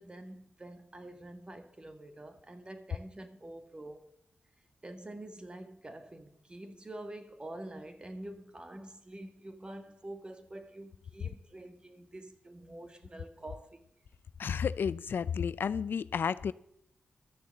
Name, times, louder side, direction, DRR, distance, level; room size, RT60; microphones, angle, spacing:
voice 1, 0.0-4.1 4.8-13.8 14.5-14.7, right 1 dB, 25° right, 1.7 m, -47 dB
voice 2, 14.4-16.5, left 7 dB, 75° left, 0.4 m, -32 dB
13.0 x 7.0 x 7.6 m
cardioid pair, 65°, 4 cm